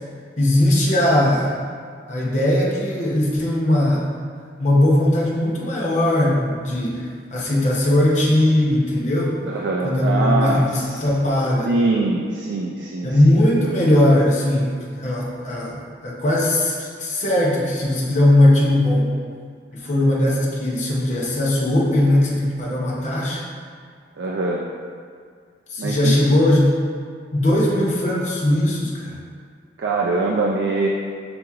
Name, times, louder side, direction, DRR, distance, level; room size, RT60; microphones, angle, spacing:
voice 1, 0.4-1.5 2.1-4.1 4.6-9.3 9.8-11.7 13.0-19.1 19.7-23.4 25.7-26.7 27.3-29.1, left 1 dB, 40° left, -4 dB, 0.7 m, -19 dB
voice 2, 9.4-11.1 11.6-13.4 24.2-24.7 25.8-26.3 29.8-30.9, right 3 dB, 75° right, -1 dB, 0.4 m, -23 dB
6.8 x 2.8 x 2.4 m, 2.1 s
head